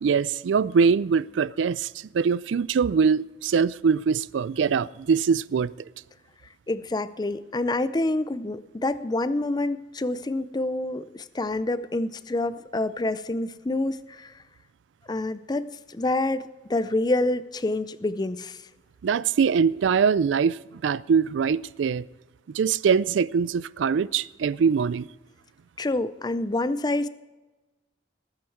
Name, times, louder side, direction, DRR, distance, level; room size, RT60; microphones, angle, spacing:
voice 1, 0.0-5.7 19.0-22.0 22.5-25.1, right 6 dB, 90° right, 0.4 m, -23 dB
voice 2, 6.7-14.3 15.1-18.6 25.8-27.1, left 2 dB, 20° left, 0.5 m, -27 dB
19.5 x 8.9 x 4.6 m
head